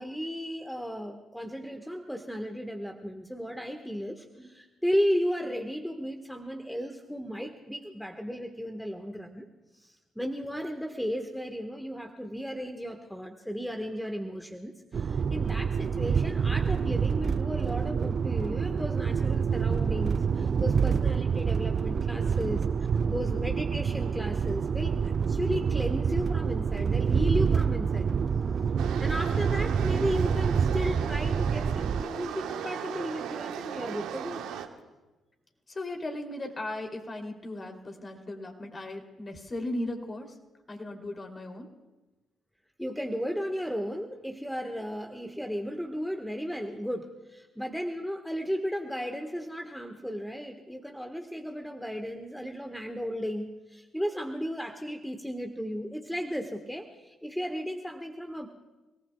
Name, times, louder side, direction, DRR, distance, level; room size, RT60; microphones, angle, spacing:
voice 1, 0.0-9.5 9.7-22.6 23.1-28.1 29.0-34.5 42.8-58.5, equal, ahead, 4 dB, 1.4 m, -34 dB
sound 1, 14.9-32.0, right 6 dB, 50° right, 0.4 m, -27 dB
sound 2, 28.8-34.7, right 9 dB, 70° right, 1.2 m, -37 dB
voice 2, 35.7-40.4 40.7-41.7, left 1 dB, 35° left, 3 dB, 3.0 m, -37 dB
30.0 x 18.5 x 2.3 m, 1.1 s
hypercardioid pair, 45°, 0 cm